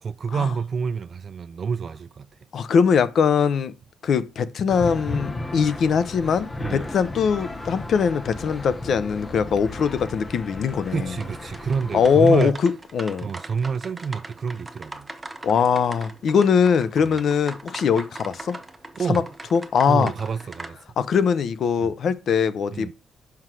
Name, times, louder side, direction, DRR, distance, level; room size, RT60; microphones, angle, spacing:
voice 1, 0.0-2.3 6.6-6.9 10.9-12.5 13.2-15.1 17.0-17.2 19.0-19.3 19.9-20.8 21.8-21.9 22.7-22.9, right 6 dB, 40° right, 0.3 m, -28 dB
voice 2, 2.5-3.8 4.0-11.1 11.9-13.3 15.4-18.6 19.1-19.2 19.5-20.1 21.0-22.9, left 6 dB, 60° left, 0.7 m, -21 dB
sound 1, 4.7-12.5, left 2 dB, 20° left, 0.7 m, -35 dB
Drainpipe Water Drops, 11.2-20.7, right 2 dB, 15° right, 0.8 m, -40 dB
6.3 x 5.9 x 4.6 m
cardioid pair, 145°, 0 cm